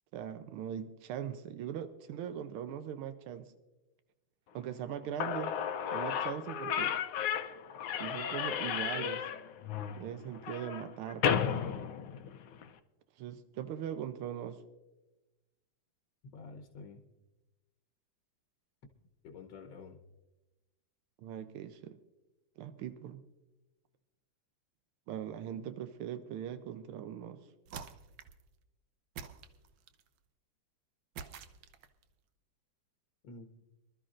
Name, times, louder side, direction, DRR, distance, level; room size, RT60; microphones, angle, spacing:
voice 1, 0.1-3.5 4.5-5.5 5.9-6.9 8.0-9.2 10.0-11.7 13.2-14.6 21.2-22.0 22.6-23.2 25.1-27.4, right 9 dB, 90° right, 10 dB, 1.6 m, -40 dB
Slam / Squeak, 4.9-5.0 5.2-12.7, left 8 dB, 85° left, 1.6 m, -34 dB
voice 2, 16.2-17.0 19.2-20.0 33.2-33.6, left 4 dB, 65° left, 4 dB, 1.7 m, -49 dB
sound 1, 27.7-28.5 29.2-30.1 31.2-32.0, right 7 dB, 65° right, 1.3 m, -47 dB
25.0 x 12.5 x 2.5 m, 1.1 s
omnidirectional pair, 2.3 m